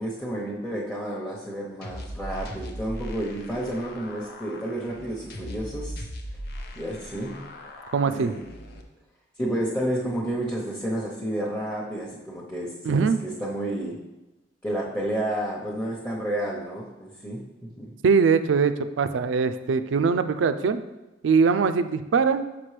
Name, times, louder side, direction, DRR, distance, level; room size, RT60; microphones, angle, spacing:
voice 1, 0.0-6.0 6.8-7.4 8.0-8.4 9.4-14.0 14.6-17.4 17.8-17.9, right 1 dB, 5° left, -5 dB, 0.8 m, -30 dB
sound 1, 1.8-8.8, equal, 55° left, 0.7 m, -39 dB
voice 2, 7.9-8.3 12.8-13.2 18.0-20.8 21.2-22.4, right 5 dB, 90° right, 11 dB, 0.4 m, -22 dB
5.9 x 5.9 x 3.3 m, 1.0 s
head